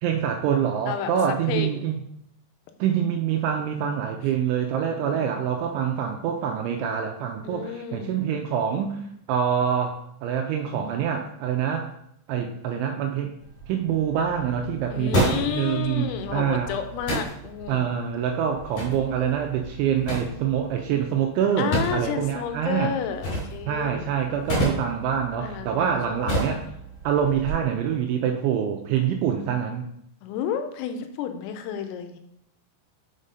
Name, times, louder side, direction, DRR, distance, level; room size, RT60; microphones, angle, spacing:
voice 1, 0.0-2.1 2.8-9.0 9.3-11.9 12.3-13.3 13.7-16.7 17.7-22.9 23.7-26.6 27.0-29.9, right 8 dB, 85° right, 3 dB, 2.7 m, -25 dB
voice 2, 1.5-1.8 5.0-5.3 7.4-8.1 14.9-17.9 21.6-24.1 25.4-26.3 30.2-32.2, left 8 dB, 85° left, 7 dB, 3.4 m, -31 dB
sound 1, 13.4-27.5, equal, 35° left, 3.7 m, -32 dB
7.1 x 5.5 x 5.2 m, 0.76 s
omnidirectional pair, 6.0 m